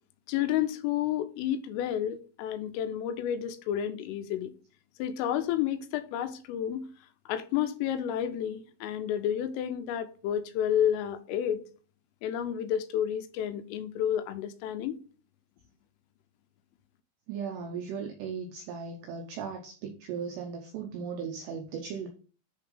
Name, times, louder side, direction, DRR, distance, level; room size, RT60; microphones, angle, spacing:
voice 1, 0.3-4.5 5.0-6.9 7.3-11.7 12.2-15.0, left 10 dB, 85° left, 3.2 m, -30 dB
voice 2, 17.3-22.1, right 6 dB, 85° right, 2.4 m, -37 dB
10.5 x 3.5 x 3.8 m
omnidirectional pair, 5.9 m